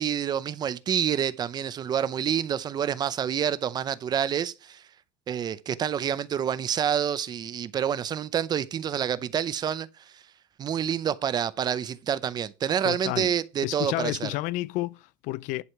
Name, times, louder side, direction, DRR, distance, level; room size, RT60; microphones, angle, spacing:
voice 1, 0.0-4.8 5.3-9.9 10.1-10.2 10.6-14.3, right 8 dB, 30° right, 0.6 m, -28 dB
voice 2, 12.8-13.3 13.6-15.6, left 18 dB, 70° left, 0.4 m, -31 dB
11.0 x 4.9 x 5.8 m
cardioid pair, 155°, 14 cm